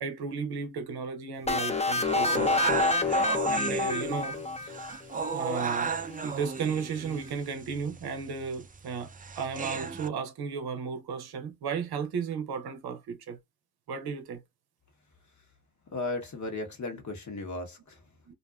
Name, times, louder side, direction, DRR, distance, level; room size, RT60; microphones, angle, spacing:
voice 1, 0.0-4.7 5.3-5.9 6.2-9.1 9.4-13.4 13.9-14.4 18.3-18.4, right 5 dB, 80° right, 0.7 m, -34 dB
sound 1, 1.5-5.2, left 3 dB, 15° left, 0.6 m, -28 dB
sound 2, 2.1-10.1, right 5 dB, 25° right, 0.3 m, -34 dB
voice 2, 15.9-18.1, left 2 dB, 50° left, 1.0 m, -36 dB
2.5 x 2.3 x 2.3 m
supercardioid pair, 40°, 37 cm